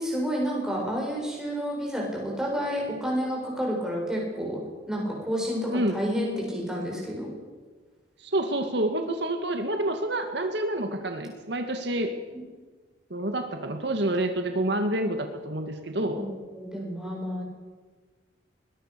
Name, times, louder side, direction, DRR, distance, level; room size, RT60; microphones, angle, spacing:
voice 1, 0.0-4.6 4.9-7.3 16.2-16.3 16.5-17.4, equal, 5° right, -3 dB, 7.8 m, -30 dB
voice 2, 5.7-6.0 8.2-12.1 13.1-16.2, right 1 dB, 60° right, 5 dB, 2.1 m, -28 dB
22.5 x 22.0 x 6.9 m, 1.4 s
head